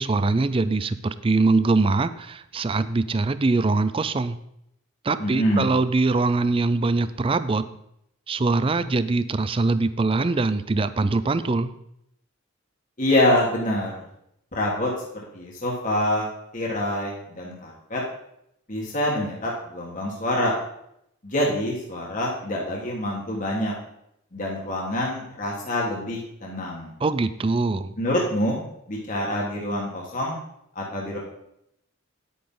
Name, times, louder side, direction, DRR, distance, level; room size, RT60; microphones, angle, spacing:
voice 1, 0.0-4.4 5.0-7.7 8.3-11.7 27.0-27.9, right 3 dB, 25° right, 14 dB, 0.4 m, -23 dB
voice 2, 5.2-5.7 13.0-13.9 14.5-14.9 15.3-18.0 18.7-20.5 21.2-23.7 24.3-26.9 28.0-30.4 30.8-31.2, left 1 dB, 40° left, -3 dB, 1.7 m, -26 dB
10.0 x 8.6 x 3.9 m, 0.77 s
head